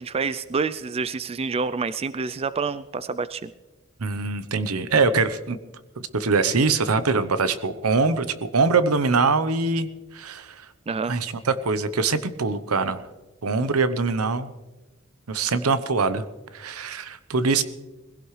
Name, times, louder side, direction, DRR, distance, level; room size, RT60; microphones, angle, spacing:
voice 1, 0.0-3.5 10.9-11.1, right 4 dB, 25° right, 14 dB, 0.4 m, -28 dB
voice 2, 4.0-5.6 6.0-9.9 10.1-10.7 11.1-13.0 13.4-14.5 15.3-16.2 16.5-17.6, right 4 dB, 80° right, 12 dB, 0.9 m, -23 dB
22.0 x 16.0 x 3.3 m, 1.2 s
head